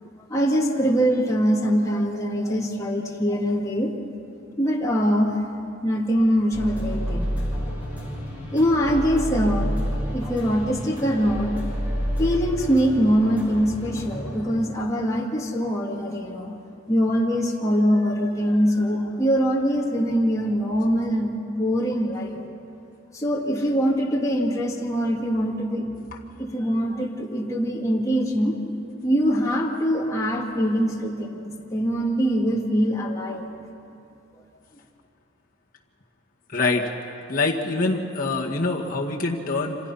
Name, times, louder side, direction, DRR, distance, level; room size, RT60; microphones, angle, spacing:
voice 1, 0.0-3.9 4.6-5.5 5.8-7.4 8.5-9.7 10.1-11.5 12.2-16.6 16.9-22.4 23.1-25.9 26.4-28.6 29.0-33.4, equal, 15° left, -3 dB, 2.3 m, -23 dB
sound 1, 6.5-14.4, equal, 10° right, 6.5 m, -29 dB
voice 2, 36.5-36.9 37.3-39.8, left 3 dB, 45° left, -3 dB, 1.9 m, -24 dB
28.0 x 26.0 x 5.7 m, 2.7 s
head